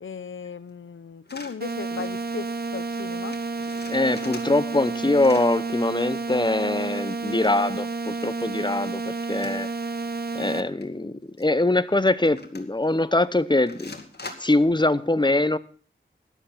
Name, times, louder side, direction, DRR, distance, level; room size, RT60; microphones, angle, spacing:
voice 1, 0.0-3.4, left 6 dB, 75° left, 0.7 m, -37 dB
sound 1, 1.2-1.6 2.0-2.2 2.5-2.6 2.8-3.0 3.3-4.9 5.1-5.6 6.9-7.9 8.4-8.5 9.3-9.7 10.0-10.1 10.5-10.8 11.4-11.5 12.3-12.9 13.7-14.7, left 3 dB, 55° left, 2.2 m, -43 dB
sound 2, 1.6-10.6, right 3 dB, 50° right, 0.9 m, -30 dB
voice 2, 3.9-9.7 10.3-14.0 14.4-15.6, left 2 dB, 20° left, 0.8 m, -23 dB
13.0 x 10.5 x 5.6 m
wide cardioid pair, 80°, 20 cm